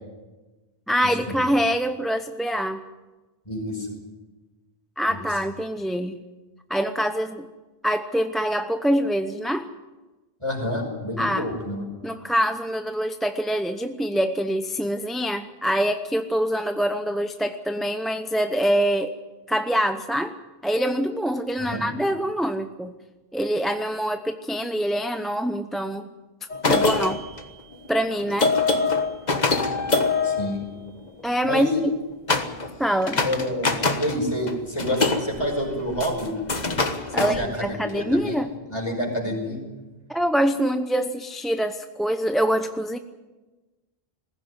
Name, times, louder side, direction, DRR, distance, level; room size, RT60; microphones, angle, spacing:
voice 1, 0.9-2.8 5.0-6.2 6.7-7.5 7.8-9.7 11.2-11.5 12.0-19.2 19.5-20.4 20.6-22.9 23.3-26.1 26.7-27.2 27.9-28.5 31.2-31.7 32.8-33.2 37.1-38.5 40.1-43.0, equal, ahead, 8 dB, 0.7 m, -25 dB
voice 2, 3.5-3.9 5.1-5.2 10.4-12.0 21.6-21.8 30.2-30.6 31.4-31.8 33.2-36.3 37.1-38.4 38.7-39.6, left 1 dB, 30° left, 2 dB, 5.3 m, -28 dB
sound 1, 26.5-31.2 32.3-32.7 33.0-34.2 34.5-38.0, left 3 dB, 45° left, 1.5 m, -24 dB
20.5 x 16.0 x 9.6 m, 1.2 s
omnidirectional pair, 1.0 m